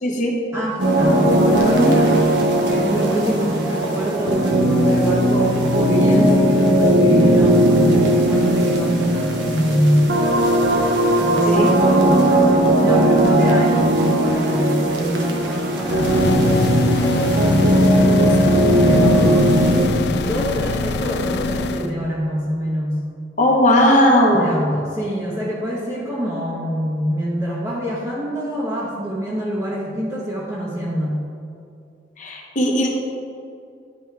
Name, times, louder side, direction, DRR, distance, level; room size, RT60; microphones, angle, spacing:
voice 1, 0.0-0.4 11.5-11.7 23.4-24.5 32.2-32.9, left 1 dB, 45° left, 0 dB, 0.9 m, -17 dB
voice 2, 0.5-2.3 2.6-10.2 11.2-19.6 20.0-23.0 24.3-31.2, equal, 15° right, -7 dB, 0.8 m, -24 dB
sound 1, 0.8-19.9, right 1 dB, 75° right, 1.0 m, -17 dB
sound 2, 15.8-21.9, left 4 dB, 65° left, 0.3 m, -24 dB
10.5 x 3.5 x 4.5 m, 2.5 s
head